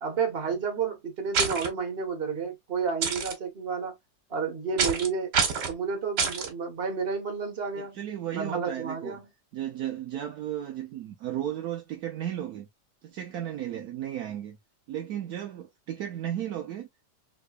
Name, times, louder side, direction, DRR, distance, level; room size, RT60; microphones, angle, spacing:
voice 1, 0.0-3.9 4.3-5.3 5.7-8.0 8.3-9.3, right 5 dB, 40° right, 1.4 m, -31 dB
sound 1, 1.3-1.7 3.0-3.3 4.8-5.1 5.3-5.7 6.2-6.5, right 5 dB, 90° right, 1.7 m, -26 dB
voice 2, 7.9-9.2 9.5-12.7 13.0-14.6 14.9-16.9, right 11 dB, 70° right, 1.1 m, -34 dB
3.8 x 3.1 x 2.3 m
omnidirectional pair, 1.8 m